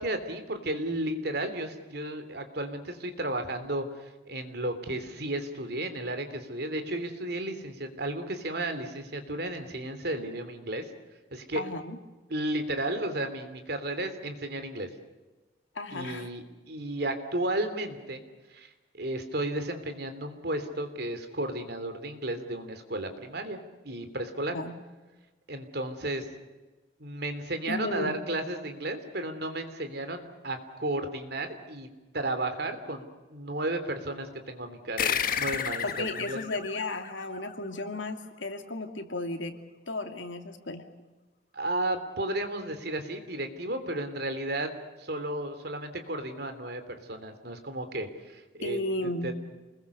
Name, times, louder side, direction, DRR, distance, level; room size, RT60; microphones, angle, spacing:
voice 1, 0.0-10.9 11.3-11.6 12.3-14.9 15.9-18.2 18.5-18.7 18.9-23.6 23.8-24.5 25.5-26.2 27.0-31.9 32.1-36.4 41.5-44.7 45.0-46.8 47.1-48.8 49.2-49.3, right 1 dB, 60° right, 8 dB, 3.2 m, -33 dB
voice 2, 11.5-12.0 15.7-16.3 24.5-24.7 27.7-28.2 35.8-39.6 39.9-40.8 48.6-49.3, left 2 dB, 85° left, 6 dB, 2.6 m, -34 dB
sound 1, 35.0-38.0, left 8 dB, 50° left, 1.6 m, -32 dB
28.5 x 21.0 x 6.9 m, 1.2 s
head